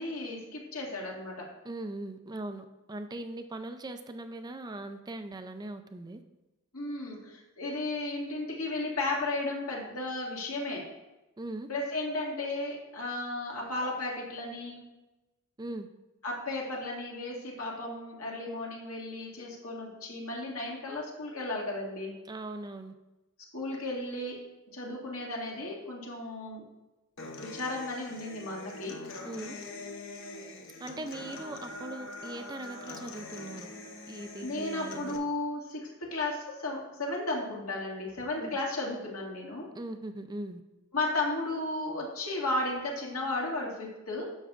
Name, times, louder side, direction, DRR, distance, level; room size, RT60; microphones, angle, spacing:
voice 1, 0.0-1.5 6.7-10.9 11.7-14.8 16.2-22.1 23.5-24.4 24.7-26.6 27.4-29.0 34.4-39.7 40.9-44.4, left 2 dB, 80° left, -2 dB, 2.1 m, -34 dB
voice 2, 1.6-6.2 11.4-11.7 15.6-15.9 22.3-22.9 29.2-29.6 30.8-33.7 34.1-35.2 38.4-38.5 39.7-40.6, right 2 dB, 20° right, 8 dB, 0.4 m, -40 dB
Human voice / Acoustic guitar, 27.2-35.2, left 2 dB, 60° left, 1.0 m, -43 dB
11.0 x 7.0 x 2.5 m, 1.0 s
head